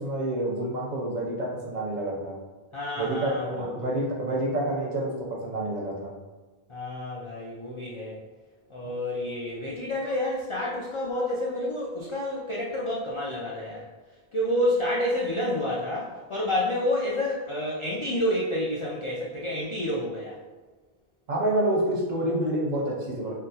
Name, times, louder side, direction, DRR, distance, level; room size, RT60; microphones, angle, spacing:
voice 1, 0.0-2.3 3.0-6.1 21.3-23.3, right 1 dB, 50° right, -3 dB, 0.6 m, -28 dB
voice 2, 2.7-3.9 6.7-8.2 8.7-13.9 14.3-20.4, left 1 dB, 55° left, -5 dB, 0.3 m, -29 dB
3.5 x 2.2 x 2.7 m, 1.3 s
omnidirectional pair, 1.1 m